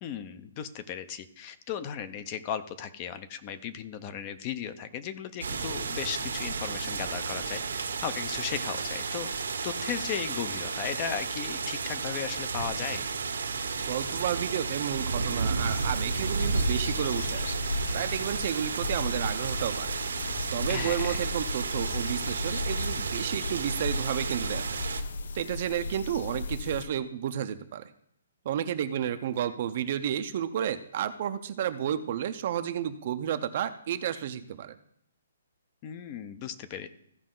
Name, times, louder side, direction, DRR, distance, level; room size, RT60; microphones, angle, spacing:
voice 1, 0.0-13.1 20.7-21.2 35.8-36.9, left 8 dB, 20° left, 12 dB, 0.5 m, -36 dB
sound 1, 5.4-25.0, right 4 dB, 85° right, 1.4 m, -32 dB
voice 2, 13.9-17.6 17.9-19.9 20.5-24.6 25.3-27.9 28.5-34.7, right 10 dB, 35° right, 11 dB, 0.5 m, -31 dB
sound 2, 15.6-26.8, left 3 dB, 60° left, 0.6 m, -36 dB
15.5 x 5.2 x 3.8 m, 0.69 s
hypercardioid pair, 175°, 0 cm